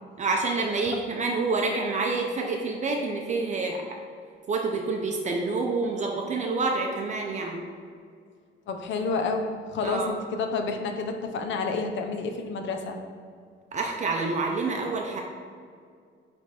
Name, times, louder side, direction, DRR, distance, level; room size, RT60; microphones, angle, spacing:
voice 1, 0.2-3.8 4.5-7.6 9.8-10.1 13.7-15.2, right 3 dB, 35° right, 1 dB, 0.6 m, -27 dB
voice 2, 8.7-13.0, left 4 dB, 70° left, 5 dB, 0.8 m, -29 dB
9.5 x 3.5 x 4.2 m, 2.2 s
cardioid pair, 175°, 20 cm